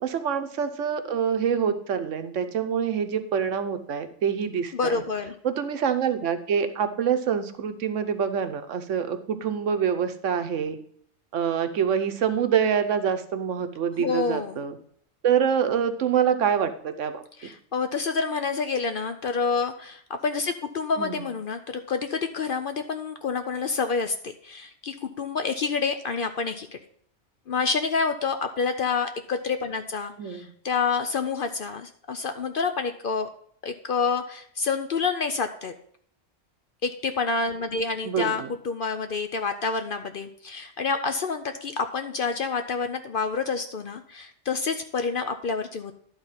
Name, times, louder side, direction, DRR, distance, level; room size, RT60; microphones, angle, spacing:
voice 1, 0.0-5.0 5.4-10.8 11.3-14.8 15.2-17.2 21.0-21.3 30.2-30.5 38.0-38.5, right 7 dB, 75° right, 9 dB, 1.1 m, -26 dB
voice 2, 4.7-5.3 14.0-14.6 17.4-26.8 27.5-33.3 33.6-35.7 36.8-46.0, left 5 dB, 55° left, 7 dB, 0.6 m, -28 dB
11.5 x 4.0 x 5.6 m, 0.63 s
omnidirectional pair, 1.3 m